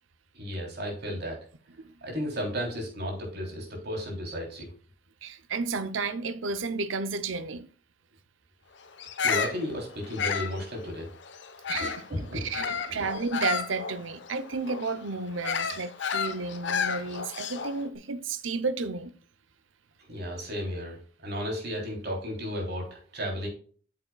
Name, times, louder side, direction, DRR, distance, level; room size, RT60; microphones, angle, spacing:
voice 1, 0.3-1.4 2.0-4.7 9.2-11.1 11.7-13.0 20.1-23.5, equal, 55° right, 3.3 m, -34 dB
voice 2, 5.2-7.7 11.7-12.0 12.3-19.1, right 4 dB, 85° right, 0.7 m, -32 dB
Bird vocalization bird call bird song, 9.0-12.1 12.5-17.8, left 6 dB, 65° left, 0.9 m, -32 dB
8.7 x 7.5 x 2.3 m
head